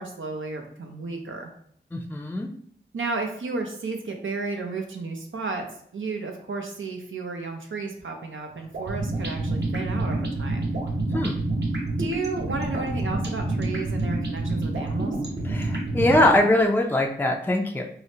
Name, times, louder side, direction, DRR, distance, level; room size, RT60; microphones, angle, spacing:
voice 1, 0.0-1.5 2.9-5.7 5.9-10.7 12.0-15.1, right 3 dB, 85° right, 3 dB, 0.6 m, -33 dB
voice 2, 1.9-2.5 11.1-11.4 15.5-17.8, left 1 dB, 10° left, 1 dB, 0.4 m, -22 dB
sound 1, 8.7-16.4, right 2 dB, 60° right, 0.8 m, -28 dB
4.8 x 2.0 x 2.7 m, 0.64 s
wide cardioid pair, 70°, 20 cm